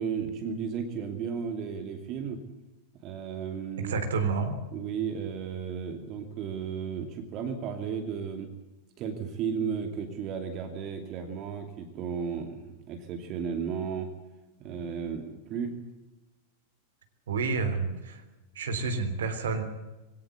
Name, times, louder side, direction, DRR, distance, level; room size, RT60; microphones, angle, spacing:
voice 1, 0.0-2.4 3.0-4.0 4.7-8.5 9.0-14.1 14.6-15.8, right 6 dB, 35° right, 6 dB, 2.7 m, -34 dB
voice 2, 3.8-4.5 17.3-18.2 18.5-19.6, right 4 dB, 65° right, 7 dB, 3.4 m, -29 dB
23.0 x 17.5 x 8.2 m, 1.1 s
figure-of-eight pair, 90°, 0 cm